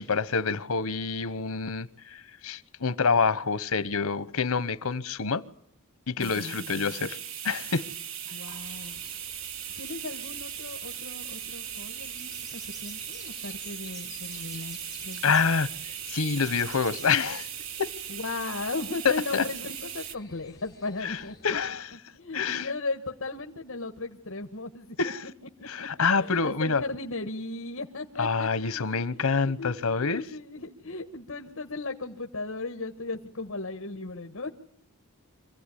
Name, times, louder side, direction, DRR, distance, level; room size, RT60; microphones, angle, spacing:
voice 1, 0.0-5.4 6.1-7.2 7.4-7.9 15.2-17.5 17.8-17.9 19.0-19.4 21.0-21.2 21.4-21.9 22.3-22.7 25.0-25.2 25.7-26.8 28.2-30.2, left 5 dB, 85° left, 1.0 m, -27 dB
voice 2, 6.2-6.9 8.3-9.0 9.8-14.8 15.0-15.4 18.1-21.5 21.9-25.3 25.6-25.9 26.2-34.5, left 3 dB, 65° left, 1.5 m, -37 dB
sound 1, 6.2-20.1, right 9 dB, 65° right, 1.1 m, -38 dB
sound 2, 8.5-21.7, left 5 dB, 15° left, 2.7 m, -52 dB
26.0 x 16.0 x 9.9 m
head